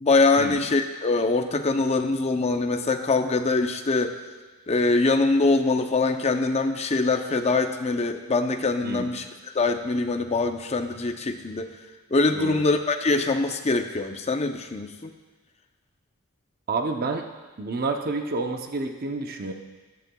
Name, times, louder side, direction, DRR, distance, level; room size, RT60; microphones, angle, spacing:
voice 1, 0.0-4.2 4.7-9.2 9.5-11.7 12.1-15.1, left 3 dB, 30° left, 7 dB, 0.6 m, -23 dB
voice 2, 12.3-12.6 16.7-17.2 17.6-19.5, right 3 dB, 45° right, 4 dB, 0.6 m, -29 dB
13.5 x 10.5 x 2.3 m, 1.3 s
head